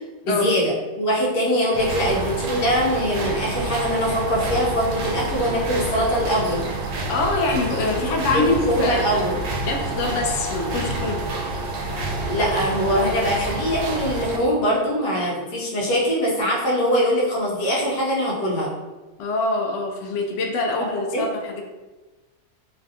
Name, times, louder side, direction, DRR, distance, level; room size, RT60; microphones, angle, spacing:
voice 1, 0.2-6.7 7.9-8.0 8.3-9.5 12.3-18.7 21.1-21.2, equal, 85° left, -4 dB, 1.4 m, -22 dB
sound 1, 1.7-14.4, right 2 dB, 90° right, 1.2 m, -28 dB
voice 2, 7.1-9.2 9.6-11.2 19.2-21.6, left 3 dB, 70° left, 2 dB, 0.7 m, -24 dB
3.3 x 2.4 x 2.7 m, 1.2 s
omnidirectional pair, 1.7 m